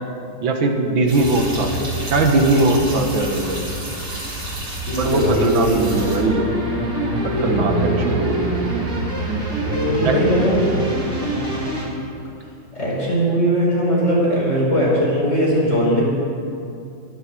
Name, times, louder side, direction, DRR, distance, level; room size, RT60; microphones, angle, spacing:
voice 1, 0.4-3.7 5.0-6.5 7.2-8.5 9.7-10.2, right 2 dB, 80° right, 3 dB, 2.2 m, -20 dB
sound 1, 1.1-6.2, right 1 dB, 65° right, 4.0 m, -29 dB
voice 2, 4.9-5.8 7.3-8.2 9.6-10.7 12.7-16.0, equal, 35° left, -6 dB, 5.3 m, -19 dB
sound 2, 5.6-11.7, left 1 dB, 75° left, 3.3 m, -31 dB
sound 3, 5.8-11.8, right 2 dB, 35° right, 3.8 m, -25 dB
22.5 x 7.6 x 7.6 m, 2.5 s
omnidirectional pair, 2.1 m